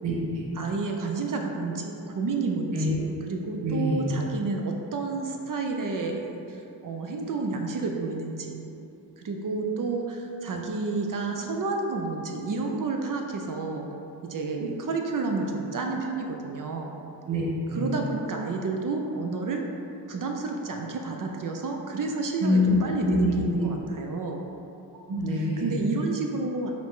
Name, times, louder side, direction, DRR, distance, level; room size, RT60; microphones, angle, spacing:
voice 1, 0.0-0.5 2.7-3.0 3.6-4.1 14.6-14.7 17.3-17.9 22.4-22.8 23.0-23.7 25.1-25.8, left 1 dB, 85° right, -3 dB, 0.9 m, -26 dB
voice 2, 0.6-2.9 3.3-8.6 9.2-13.9 14.2-16.9 17.7-19.6 20.1-24.4 25.6-26.7, right 3 dB, 50° right, 2 dB, 0.5 m, -30 dB
4.9 x 2.7 x 3.6 m, 2.8 s
cardioid pair, 70°, 43 cm